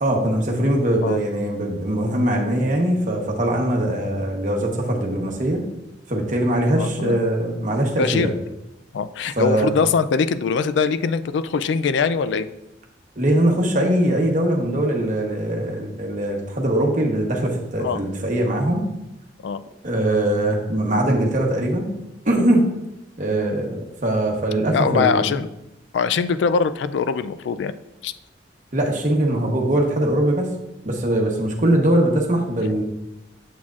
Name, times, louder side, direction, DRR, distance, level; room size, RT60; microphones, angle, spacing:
voice 1, 0.0-5.6 6.1-8.3 9.4-9.7 13.2-18.9 19.8-21.9 22.2-22.6 23.2-25.2 28.7-30.5 30.8-32.8, right 1 dB, 40° right, 1 dB, 1.0 m, -21 dB
voice 2, 6.7-7.2 8.0-8.3 8.9-12.5 17.8-18.0 19.4-19.6 23.4-23.6 24.7-25.5 25.9-27.7 28.0-28.1 29.4-29.5, left 5 dB, 70° left, 13 dB, 0.3 m, -22 dB
7.4 x 6.1 x 2.4 m, 0.93 s
head